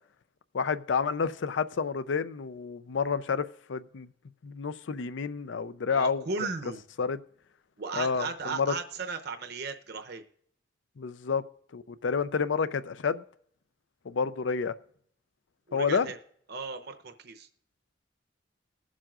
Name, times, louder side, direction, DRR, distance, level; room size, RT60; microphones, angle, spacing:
voice 1, 0.5-4.1 4.4-6.2 7.0-7.2 8.0-8.7 11.0-11.4 11.7-13.2 14.1-14.7 15.7-16.1, left 5 dB, 85° left, 0.5 m, -29 dB
voice 2, 5.9-6.8 7.8-10.2 15.7-16.2 16.5-17.5, right 4 dB, 60° right, 0.8 m, -36 dB
20.5 x 7.4 x 2.4 m
head